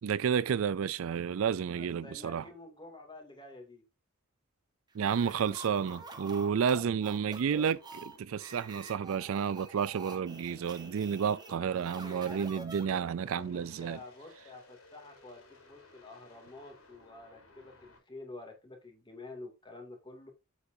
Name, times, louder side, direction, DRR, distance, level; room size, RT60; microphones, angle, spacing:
voice 1, 0.0-2.4 4.9-14.0, right 7 dB, 65° right, 0.4 m, -31 dB
voice 2, 1.8-3.8 11.5-20.3, left 2 dB, 20° left, 2.5 m, -49 dB
sound 1, 5.0-13.3, right 3 dB, 20° right, 1.4 m, -48 dB
sound 2, 5.4-18.0, left 2 dB, 70° left, 3.6 m, -59 dB
8.5 x 7.9 x 2.7 m
head